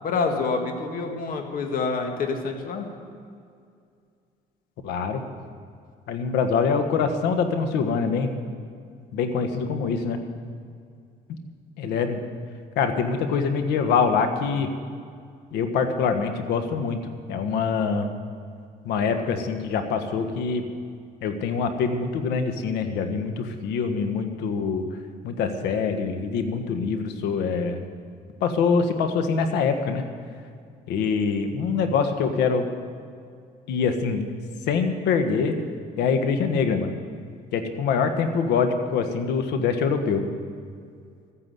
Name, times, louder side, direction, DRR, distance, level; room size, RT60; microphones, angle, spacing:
voice 1, 0.0-2.9, left 4 dB, 55° left, 4 dB, 2.0 m, -27 dB
voice 2, 4.8-5.2 6.1-8.4 9.1-10.2 11.8-12.2 12.7-14.7 15.5-17.0 17.3-18.1 18.8-20.6 21.2-24.8 25.2-27.8 28.4-30.0 30.9-32.7 33.7-34.4 34.7-35.6 36.0-36.9 37.5-40.2, left 5 dB, 85° left, 7 dB, 1.4 m, -24 dB
14.0 x 9.8 x 8.2 m, 2.3 s
cardioid pair, 110°, 17 cm